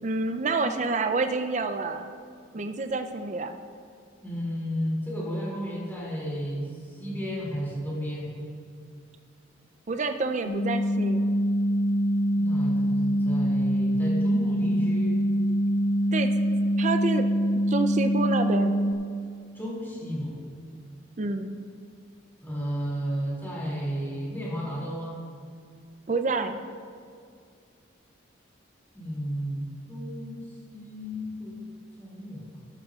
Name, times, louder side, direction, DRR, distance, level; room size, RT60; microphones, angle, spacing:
voice 1, 0.0-2.1 2.5-3.6 9.9-11.2 16.1-16.3 16.8-17.3 17.7-18.8 21.2-21.5 26.1-26.6, right 3 dB, 35° right, 7 dB, 0.4 m, -28 dB
voice 2, 4.2-8.3 12.3-15.1 19.5-20.4 22.4-25.1 28.9-31.7 32.0-32.6, equal, 10° left, -6 dB, 2.6 m, -33 dB
sound 1, 10.4-18.9, equal, 85° left, 1.0 m, -24 dB
12.5 x 12.5 x 2.4 m, 2.3 s
head